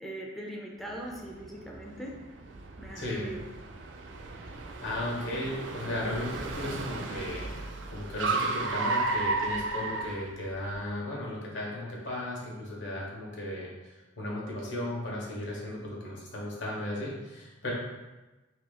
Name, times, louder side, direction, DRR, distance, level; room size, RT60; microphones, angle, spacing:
voice 1, 0.0-2.1 2.8-3.4, right 1 dB, ahead, -2 dB, 0.4 m, -40 dB
Car, 0.9-10.8, right 3 dB, 90° right, 0.4 m, -34 dB
voice 2, 2.9-3.3 4.8-7.6 7.9-17.7, left 1 dB, 90° left, -3 dB, 1.1 m, -35 dB
2.9 x 2.9 x 3.9 m, 1.1 s
head